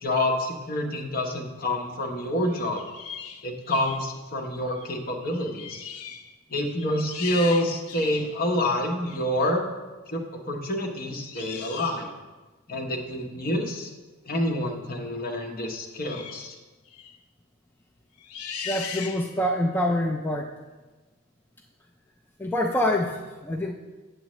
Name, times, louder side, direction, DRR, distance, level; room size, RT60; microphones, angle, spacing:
voice 1, 0.0-2.8 3.4-5.9 6.5-9.7 10.1-12.1 12.7-13.9 14.3-16.5, left 1 dB, 45° left, 2 dB, 0.9 m, -27 dB
sound 1, 2.4-4.1 4.7-5.0 5.2-6.3 6.7-8.4 9.0-9.2 11.3-12.1 16.0-16.5 16.9-17.2 18.2-19.5, left 7 dB, 85° left, 0.6 m, -39 dB
voice 2, 18.7-20.5 22.4-23.7, left 1 dB, 10° left, 0 dB, 0.3 m, -26 dB
7.8 x 7.3 x 3.0 m, 1.2 s
head